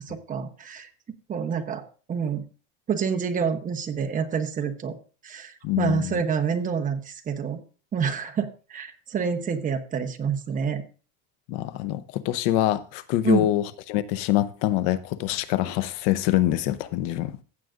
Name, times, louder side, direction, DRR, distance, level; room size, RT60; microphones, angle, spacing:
voice 1, 0.1-0.9 1.3-2.4 2.9-5.0 5.2-7.6 7.9-10.8 13.2-13.5, right 6 dB, 25° right, 1.0 m, -28 dB
voice 2, 5.6-6.1 11.5-17.3, left 14 dB, 75° left, 0.8 m, -25 dB
15.5 x 7.7 x 2.5 m
cardioid pair, 150°, 33 cm